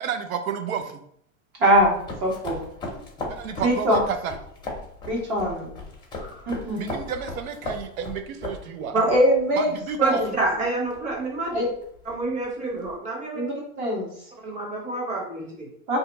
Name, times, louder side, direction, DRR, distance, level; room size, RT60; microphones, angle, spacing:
voice 1, 0.0-0.8 3.4-4.3 6.8-8.9 9.6-10.2, right 7 dB, 85° right, 7 dB, 0.7 m, -30 dB
voice 2, 1.6-2.6 3.2-3.3 3.6-4.0 5.1-5.7 6.5-6.8 8.9-9.7 10.0-10.3 11.5-11.6 13.3-14.1 15.9-16.0, equal, 55° right, -3 dB, 1.5 m, -22 dB
sound 1, 1.7-12.9, left 2 dB, 10° left, 0.6 m, -38 dB
voice 3, 6.2-6.5 8.9-9.1 10.0-11.6 12.0-13.5 14.4-15.7, right 3 dB, 20° right, -1 dB, 0.8 m, -27 dB
2.8 x 2.3 x 4.0 m, 0.68 s
supercardioid pair, 130°, 40 cm